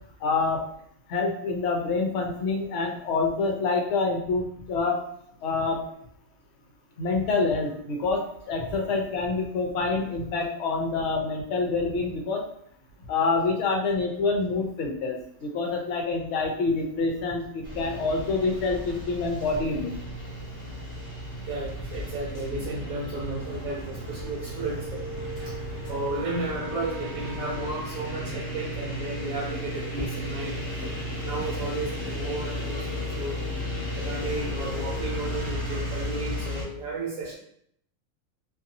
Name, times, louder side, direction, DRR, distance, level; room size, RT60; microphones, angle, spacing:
voice 1, 0.2-0.6 1.1-5.0 5.4-5.8 7.0-12.4 13.1-20.0, left 3 dB, 60° left, 2 dB, 0.8 m, -27 dB
sound 1, 17.6-36.6, left 1 dB, 15° left, 1.1 m, -34 dB
voice 2, 21.5-25.0 25.4-25.6 25.9-30.8 31.2-33.4 34.0-37.3, right 2 dB, 70° right, -5 dB, 1.0 m, -33 dB
2.6 x 2.5 x 2.6 m, 0.68 s
omnidirectional pair, 1.6 m